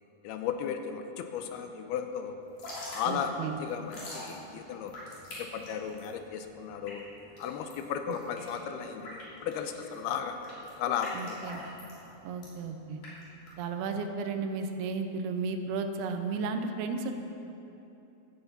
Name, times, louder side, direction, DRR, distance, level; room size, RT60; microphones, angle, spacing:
voice 1, 0.2-2.4 2.9-4.9 5.4-7.1 7.4-10.4 10.8-11.4, left 7 dB, 85° left, 6 dB, 2.6 m, -35 dB
Drip / Trickle dribble, 2.4-14.0, left 1 dB, 50° left, 4.5 m, -46 dB
voice 2, 3.1-3.6 8.1-8.2 11.1-11.6 12.2-13.0 13.6-17.1, right 4 dB, 80° right, 6 dB, 2.7 m, -34 dB
15.5 x 13.0 x 4.2 m, 2.9 s
omnidirectional pair, 4.6 m